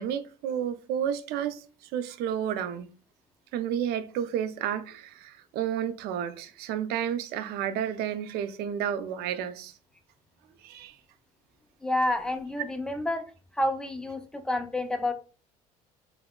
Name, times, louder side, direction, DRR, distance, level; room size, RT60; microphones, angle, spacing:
voice 1, 0.0-2.9 3.5-9.8 10.6-11.0, right 9 dB, 60° right, 0.4 m, -31 dB
voice 2, 11.8-13.2 13.5-15.1, left 1 dB, 5° left, 0.4 m, -29 dB
3.4 x 2.1 x 2.2 m
hypercardioid pair, 65°, 19 cm